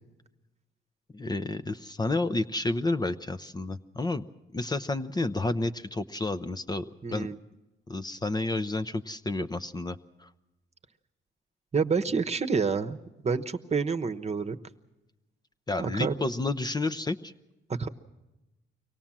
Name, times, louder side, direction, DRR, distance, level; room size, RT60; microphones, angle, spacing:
voice 1, 1.1-4.2 4.5-7.3 7.9-10.3 15.7-17.3, left 2 dB, 20° left, 11 dB, 0.7 m, -30 dB
voice 2, 7.0-7.4 11.7-13.0 13.2-14.6 15.8-16.3 17.7-17.9, right 5 dB, 35° right, 8 dB, 1.1 m, -28 dB
24.5 x 18.0 x 7.4 m, 1.0 s
cardioid pair, 90°, 20 cm